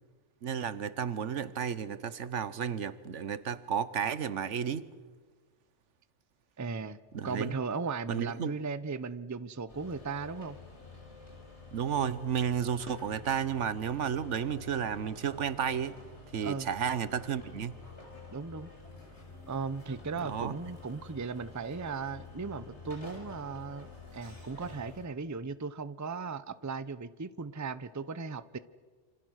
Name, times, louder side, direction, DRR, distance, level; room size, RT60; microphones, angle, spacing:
voice 1, 0.4-4.9 7.1-7.5 8.1-8.5 11.7-16.0 16.3-17.8 20.2-20.6, right 8 dB, 75° right, 15 dB, 1.3 m, -32 dB
voice 2, 6.6-7.0 7.2-10.6 16.4-16.7 18.3-18.7 19.5-28.6, right 4 dB, 20° right, 15 dB, 0.6 m, -37 dB
sound 1, 9.7-25.1, left 3 dB, 65° left, 6.0 m, -49 dB
27.5 x 27.0 x 6.4 m, 1.4 s
omnidirectional pair, 1.2 m